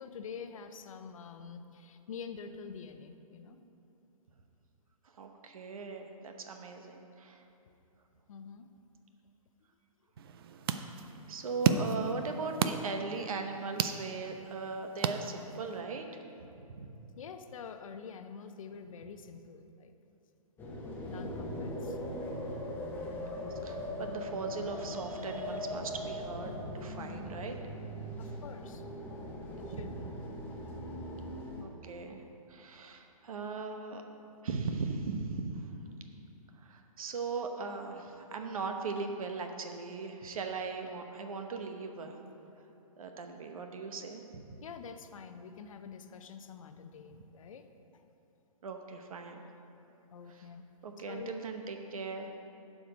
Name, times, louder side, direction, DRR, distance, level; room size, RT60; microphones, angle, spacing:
voice 1, 0.0-3.6 8.3-8.7 17.2-19.9 21.1-22.0 28.2-28.8 29.7-30.1 44.6-47.7 47.9-48.0 50.1-50.7 51.1-51.4, left 6 dB, 60° left, 8 dB, 0.7 m, -46 dB
voice 2, 5.0-7.4 11.3-16.2 16.6-16.9 21.6-21.7 23.1-27.6 29.7-29.9 30.3-30.5 31.6-32.2 32.5-34.0 34.4-35.7 36.6-42.2 43.0-44.2 48.6-49.5 50.3-50.5 50.8-52.3, right 4 dB, 70° right, 5 dB, 1.0 m, -39 dB
sound 1, 10.2-15.8, right 7 dB, 40° right, 0.4 m, -34 dB
sound 2, 20.6-31.6, left 1 dB, 10° left, 1.0 m, -40 dB
11.5 x 5.1 x 5.0 m, 2.8 s
hypercardioid pair, 150°, 19 cm